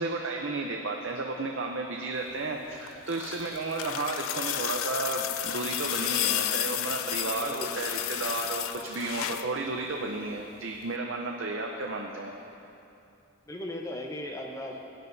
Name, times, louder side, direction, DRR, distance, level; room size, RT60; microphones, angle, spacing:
voice 1, 0.0-12.4, right 3 dB, 60° right, 1 dB, 0.6 m, -33 dB
sound 1, 2.8-9.5 10.8-10.9, left 12 dB, 70° left, 0.3 m, -32 dB
voice 2, 7.4-7.8 13.5-14.9, left 1 dB, 15° left, 1 dB, 0.8 m, -37 dB
17.5 x 9.6 x 2.7 m, 2.8 s
head